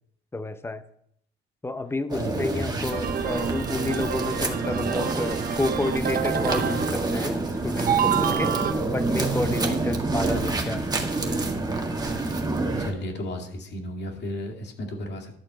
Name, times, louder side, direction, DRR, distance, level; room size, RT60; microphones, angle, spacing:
voice 1, 0.3-0.8 1.6-8.5 8.9-11.3, left 2 dB, 10° left, 11 dB, 0.8 m, -30 dB
voice 2, 2.1-2.7 12.8-15.4, left 1 dB, 60° left, 3 dB, 2.2 m, -34 dB
sound 1, 2.1-12.9, right 3 dB, 20° right, 1.6 m, -28 dB
sound 2, 2.9-7.5 7.8-8.7, right 8 dB, 45° right, 0.9 m, -28 dB
12.0 x 4.4 x 8.0 m, 0.69 s
cardioid pair, 90°, 20 cm